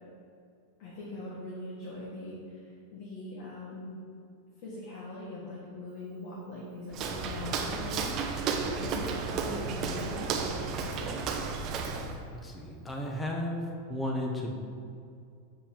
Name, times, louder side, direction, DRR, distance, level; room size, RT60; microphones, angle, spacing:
voice 1, 0.8-4.0 4.6-11.2, left 2 dB, 45° left, -6 dB, 1.9 m, -42 dB
Walk footsteps, 6.9-12.2, right 5 dB, 30° right, 0.8 m, -33 dB
voice 2, 12.4-13.6 13.9-14.5, left 1 dB, 10° left, 1 dB, 0.9 m, -33 dB
7.0 x 5.5 x 7.3 m, 2.4 s
supercardioid pair, 170°, 0 cm